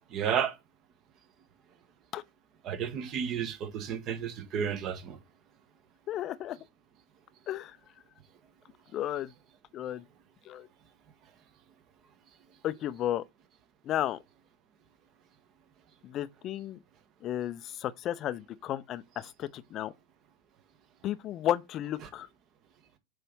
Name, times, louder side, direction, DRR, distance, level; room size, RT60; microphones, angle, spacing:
voice 1, 0.1-0.5 2.6-5.2, right 8 dB, 35° right, 1.4 m, -32 dB
voice 2, 6.1-6.6 7.5-7.8 8.9-9.3 9.7-10.0 10.4-10.7 12.6-13.2 13.8-14.2 16.0-16.8 17.2-19.9 21.0-22.3, left 12 dB, 35° left, 0.6 m, -33 dB
8.2 x 3.3 x 5.4 m
figure-of-eight pair, 90°, 0 cm